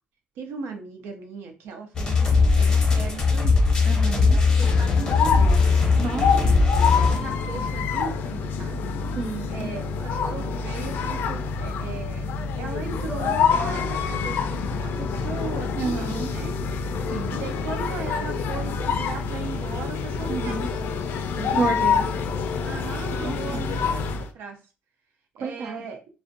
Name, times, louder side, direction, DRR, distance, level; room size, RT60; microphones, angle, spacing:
voice 1, 0.4-3.7 4.0-5.6 6.9-8.8 9.5-12.3 12.6-16.5 17.3-20.8 21.3-21.6 22.6-23.8 24.3-24.6 25.3-26.0, right 4 dB, 90° right, 4 dB, 0.6 m, -37 dB
sound 1, 1.9-7.5, left 4 dB, 20° left, 0.8 m, -20 dB
voice 2, 3.8-4.4 6.0-6.6 9.1-9.8 15.8-16.3 17.1-17.4 20.3-20.7 21.5-22.1 23.1-23.6 25.4-25.8, right 5 dB, 45° right, 6 dB, 0.3 m, -31 dB
sound 2, 4.6-24.3, left 5 dB, 65° left, 0.4 m, -27 dB
2.5 x 2.1 x 2.5 m, 0.33 s
cardioid pair, 150°, 4 cm